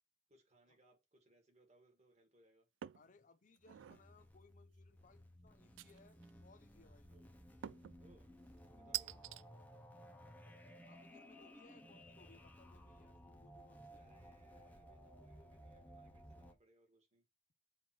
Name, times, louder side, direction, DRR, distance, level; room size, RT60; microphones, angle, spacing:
voice 1, 0.3-2.7 7.1-7.3 8.0-8.3 8.7-9.2 13.9-17.2, right 2 dB, 35° right, 2.1 m, -70 dB
sound 1, 2.8-3.1 3.6-4.0 5.8-6.3 7.6-8.0 8.9-9.4, right 14 dB, 75° right, 0.3 m, -45 dB
voice 2, 2.9-7.1 9.2-9.3 10.8-14.1, left 4 dB, 45° left, 0.6 m, -67 dB
sound 2, 3.6-16.5, equal, 10° left, 1.0 m, -58 dB
7.3 x 2.9 x 6.0 m
head